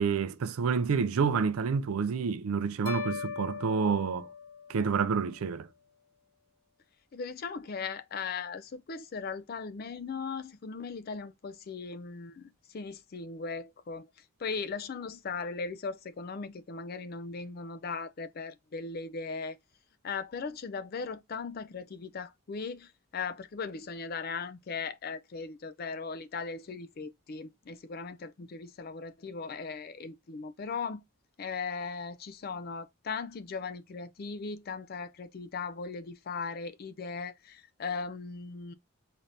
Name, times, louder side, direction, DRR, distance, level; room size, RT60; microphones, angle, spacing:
voice 1, 0.0-4.3 4.7-5.7, right 5 dB, 80° right, 0.4 m, -28 dB
sound 1, 2.9-5.1, left 6 dB, 70° left, 0.7 m, -39 dB
voice 2, 7.1-14.1 14.4-19.6 20.0-31.0 31.4-38.7, left 5 dB, 45° left, 0.4 m, -38 dB
4.0 x 2.6 x 3.2 m
head